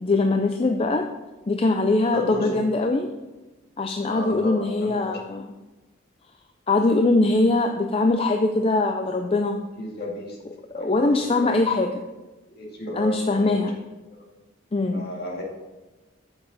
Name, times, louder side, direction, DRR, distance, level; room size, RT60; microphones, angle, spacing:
voice 1, 0.0-1.1 1.5-3.1 3.8-5.5 6.7-9.6 10.7-12.0 12.9-13.8 14.7-15.0, left 2 dB, 25° left, 5 dB, 0.4 m, -22 dB
voice 2, 2.1-2.6 4.0-5.2 9.8-10.4 10.7-11.7 12.5-13.8 14.9-15.4, left 1 dB, 50° left, -2 dB, 2.1 m, -33 dB
9.4 x 7.0 x 4.0 m, 1.2 s
head